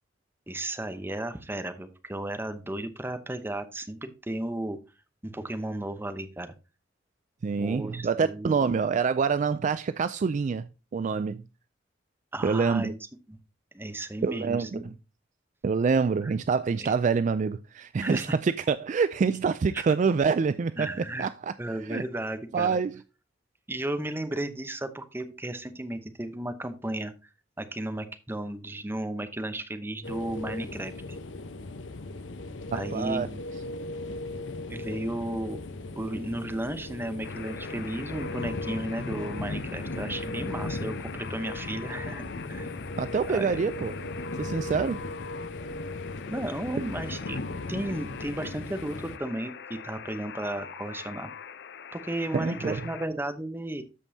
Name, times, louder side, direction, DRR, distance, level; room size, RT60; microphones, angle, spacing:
voice 1, 0.5-4.8 5.2-6.5 7.6-8.7 12.3-13.0 13.3-13.4 13.7-14.9 16.2-16.3 16.8-16.9 18.0-18.4 19.7-19.8 20.8-21.3 21.6-22.8 23.7-27.1 27.6-31.2 32.7-33.4 34.7-35.6 36.0-42.2 42.5-42.7 43.3-43.6 46.3-47.4 47.7-51.3 51.9-53.8, right 1 dB, 10° right, 0.8 m, -34 dB
voice 2, 7.4-11.4 12.4-12.9 14.2-14.8 15.6-20.9 21.2-21.5 21.9-22.0 22.5-23.0 32.7-33.3 43.0-43.9 44.4-45.0 52.3-52.8, right 5 dB, 40° right, 0.3 m, -26 dB
sound 1, 30.0-49.2, left 2 dB, 90° left, 0.8 m, -37 dB
Alarm, 37.2-53.1, left 7 dB, 60° left, 0.6 m, -44 dB
13.0 x 5.3 x 2.7 m
head